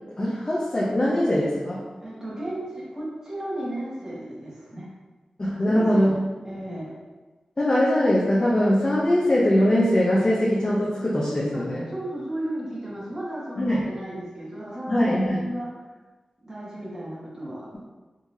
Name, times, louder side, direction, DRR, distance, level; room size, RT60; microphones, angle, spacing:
voice 1, 0.2-1.8 5.4-6.2 7.6-11.8 13.6-13.8 14.9-15.4, left 1 dB, 40° left, -6 dB, 0.6 m, -21 dB
voice 2, 2.0-4.9 5.7-7.0 11.5-15.7 16.4-17.7, right 1 dB, 25° right, -7 dB, 1.4 m, -34 dB
3.7 x 2.9 x 2.7 m, 1.3 s
cardioid pair, 50°, 2 cm